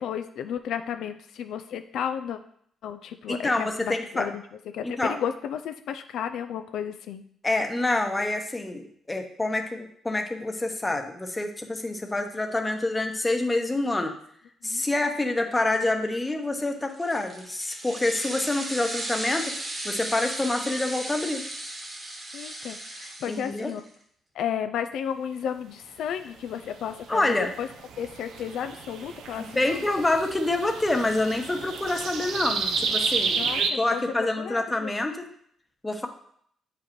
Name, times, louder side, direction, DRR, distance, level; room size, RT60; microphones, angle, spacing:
voice 1, 0.0-2.4 2.8-4.4 4.7-7.2 14.6-14.8 22.3-23.8 24.4-27.7 28.0-29.8 33.4-33.6 33.9-34.9, left 8 dB, 75° left, 8 dB, 0.4 m, -33 dB
voice 2, 3.3-4.3 4.8-5.2 7.4-14.1 14.6-19.5 19.8-21.4 23.3-23.7 27.1-27.5 29.4-35.3 35.8-36.1, left 2 dB, 15° left, 5 dB, 0.9 m, -27 dB
sound 1, 16.9-23.9, right 1 dB, 30° right, 1.4 m, -36 dB
sound 2, 26.9-33.7, right 5 dB, 75° right, 0.7 m, -31 dB
8.1 x 4.9 x 3.0 m, 0.65 s
cardioid pair, 90°, 0 cm